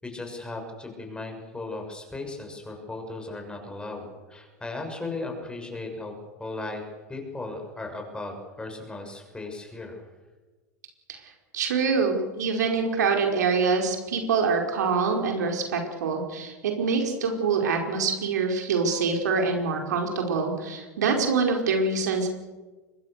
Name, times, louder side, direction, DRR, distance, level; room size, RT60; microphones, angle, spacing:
voice 1, 0.0-6.1 6.4-6.8 7.1-10.0, left 2 dB, 10° left, 3 dB, 6.8 m, -36 dB
voice 2, 11.5-22.3, right 4 dB, 75° right, 3 dB, 5.1 m, -25 dB
24.5 x 22.0 x 6.8 m, 1.3 s
hypercardioid pair, 95°, 9 cm